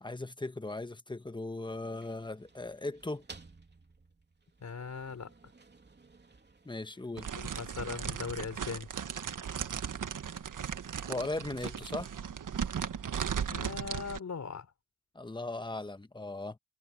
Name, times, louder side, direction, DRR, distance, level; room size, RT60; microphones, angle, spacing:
voice 1, 0.0-3.2 6.6-7.3 11.0-12.1 15.1-16.6, left 2 dB, 10° left, 1.3 m, -38 dB
sound 1, 1.6-7.6, right 3 dB, 25° right, 3.0 m, -57 dB
voice 2, 4.6-5.3 7.3-8.9 13.3-14.7, left 5 dB, 45° left, 4.2 m, -40 dB
sound 2, 7.2-14.2, right 7 dB, 55° right, 1.6 m, -37 dB
cardioid pair, 80°, 38 cm